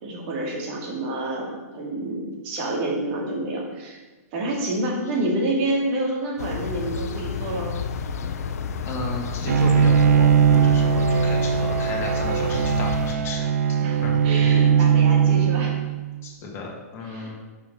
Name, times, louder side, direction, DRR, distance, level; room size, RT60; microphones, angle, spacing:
voice 1, 0.0-4.0 4.3-7.8 13.8-15.8 17.0-17.3, right 1 dB, 45° right, -1 dB, 2.5 m, -28 dB
sound 1, 6.4-13.1, left 5 dB, 75° left, 0.8 m, -31 dB
voice 2, 8.9-13.5 14.0-14.4 16.2-17.3, left 3 dB, 30° left, -2 dB, 2.2 m, -34 dB
Bowed string instrument, 9.5-16.1, right 7 dB, 80° right, 0.5 m, -19 dB
5.8 x 5.7 x 6.8 m, 1.3 s
hypercardioid pair, 145°, 8 cm